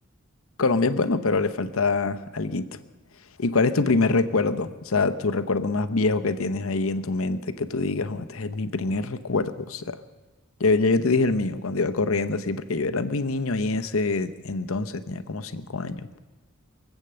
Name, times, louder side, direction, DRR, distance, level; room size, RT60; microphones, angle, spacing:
voice 1, 0.6-2.7 3.4-10.0 10.6-16.2, left 3 dB, 75° left, 10 dB, 0.8 m, -25 dB
23.5 x 8.2 x 6.8 m, 1.2 s
head